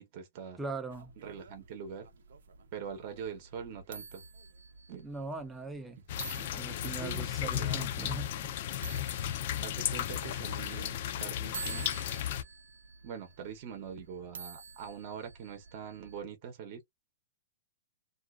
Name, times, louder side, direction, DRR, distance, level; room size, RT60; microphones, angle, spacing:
voice 1, 0.0-0.6 1.2-2.1 2.7-4.2 4.9-5.1 6.8-7.9 9.6-11.9 13.0-16.8, right 7 dB, 40° right, 0.8 m, -43 dB
voice 2, 0.6-1.1 5.0-6.0 6.4-8.5, right 3 dB, 5° right, 0.5 m, -40 dB
sound 1, 0.9-16.2, right 5 dB, 80° right, 0.6 m, -49 dB
sound 2, 6.1-12.4, left 11 dB, 50° left, 0.4 m, -34 dB
2.4 x 2.3 x 2.3 m
hypercardioid pair, 150°, 0 cm